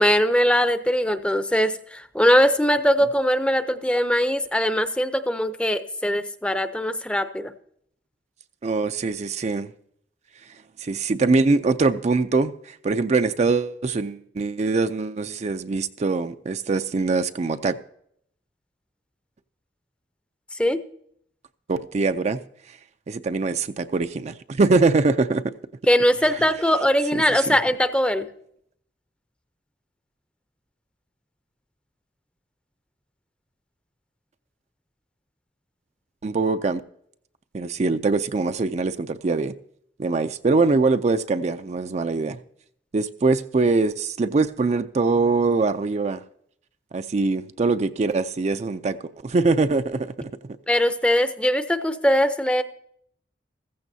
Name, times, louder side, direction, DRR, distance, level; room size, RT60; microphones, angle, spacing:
voice 1, 0.0-7.5 20.6-20.8 25.9-28.3 50.7-52.6, equal, 5° left, 0.6 m, -21 dB
voice 2, 8.6-9.7 10.8-17.8 21.7-22.4 22.7-22.8 23.1-25.5 27.1-27.6 36.2-36.8 37.5-39.5 40.0-42.4 42.9-46.2 46.9-49.0 49.2-50.3, right 3 dB, 40° right, 0.4 m, -23 dB
15.0 x 14.5 x 2.7 m
head